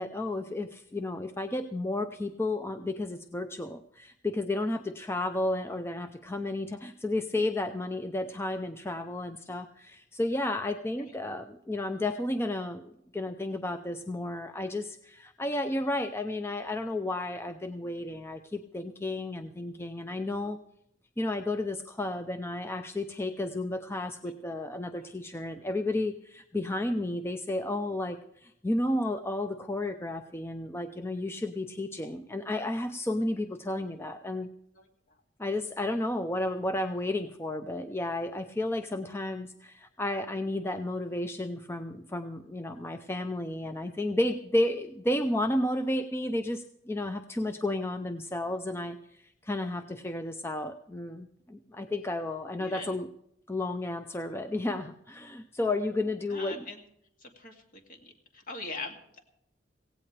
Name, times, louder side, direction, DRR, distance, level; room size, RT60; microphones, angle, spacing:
voice 1, 0.0-20.6 21.2-34.5 35.4-53.1 53.5-56.7, left 1 dB, 15° left, 8 dB, 0.5 m, -32 dB
voice 2, 34.7-35.2 52.6-53.0 56.3-56.8 57.2-59.2, left 3 dB, 45° left, 3 dB, 2.4 m, -42 dB
17.0 x 17.0 x 3.3 m, 0.76 s
head